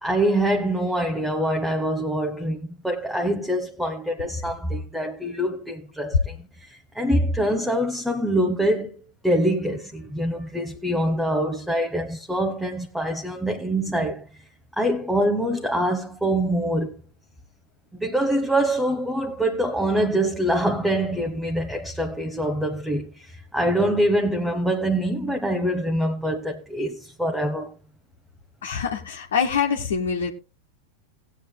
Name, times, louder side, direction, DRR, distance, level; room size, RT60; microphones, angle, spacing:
voice 1, 0.0-6.4 6.7-8.9 9.2-14.3 14.8-17.0 17.9-27.7, right 1 dB, ahead, 1.3 m, -24 dB
voice 2, 28.6-30.3, left 6 dB, 60° left, 1.6 m, -25 dB
19.0 x 8.9 x 2.3 m
figure-of-eight pair, 90°, 0 cm